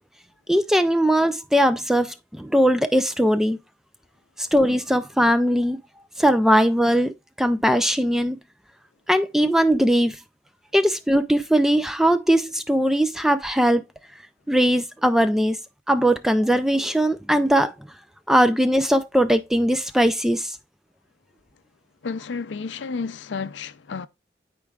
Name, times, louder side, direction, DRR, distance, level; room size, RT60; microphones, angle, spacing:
voice 1, 0.5-3.6 4.4-5.8 6.2-8.4 9.1-10.2 10.7-13.8 14.5-15.6 15.9-17.7 18.3-20.6, equal, ahead, 0.4 m, -20 dB
voice 2, 22.0-24.1, left 5 dB, 80° left, 0.5 m, -31 dB
11.5 x 4.5 x 2.4 m
head